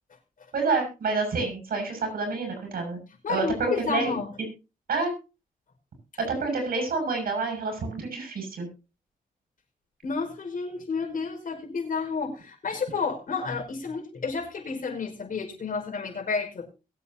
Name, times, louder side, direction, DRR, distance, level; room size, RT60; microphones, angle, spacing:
voice 1, 0.5-3.0 3.3-4.2 4.9-5.1 6.2-8.7, right 4 dB, 80° right, 4 dB, 6.8 m, -28 dB
voice 2, 3.2-4.3 10.0-16.7, left 5 dB, 65° left, 1 dB, 5.3 m, -31 dB
21.5 x 8.3 x 2.8 m, 0.30 s
cardioid pair, 90°, 15 cm